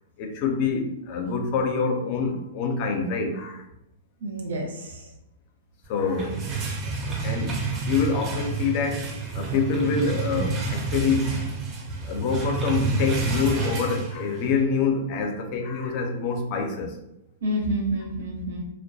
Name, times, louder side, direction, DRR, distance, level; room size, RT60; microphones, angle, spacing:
voice 1, 0.2-3.6 5.9-6.4 7.2-7.6 7.9-9.1 9.3-11.4 12.1-16.9, left 5 dB, 45° left, 4 dB, 0.5 m, -26 dB
voice 2, 4.2-5.1 17.4-18.6, right 1 dB, 75° right, 0 dB, 0.7 m, -29 dB
sound 1, 5.9-14.6, right 3 dB, 30° right, 0.5 m, -29 dB
2.2 x 2.2 x 2.6 m, 0.85 s
hypercardioid pair, 125°, 0 cm